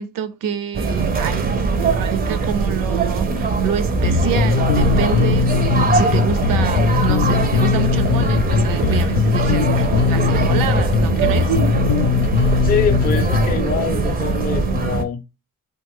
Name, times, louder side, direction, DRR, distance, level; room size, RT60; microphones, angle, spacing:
voice 1, 0.0-11.6, right 8 dB, 75° right, 0.6 m, -28 dB
sound 1, 0.7-15.0, right 4 dB, 30° right, 0.4 m, -21 dB
Bass guitar, 4.0-13.6, left 7 dB, 80° left, 0.5 m, -19 dB
voice 2, 12.6-15.2, left 6 dB, 25° left, 0.4 m, -24 dB
3.1 x 2.3 x 2.9 m
cardioid pair, 125°, 34 cm